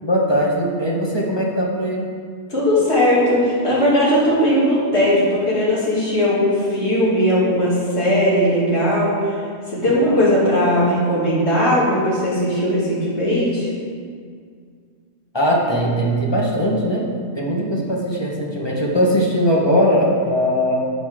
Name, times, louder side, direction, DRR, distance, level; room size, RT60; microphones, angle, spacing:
voice 1, 0.0-2.1 15.3-17.1 17.3-20.8, equal, 20° left, -3 dB, 1.3 m, -20 dB
voice 2, 2.5-9.3 9.7-13.7, equal, 60° left, -7 dB, 3.0 m, -18 dB
11.5 x 7.1 x 3.7 m, 2.1 s
omnidirectional pair, 1.3 m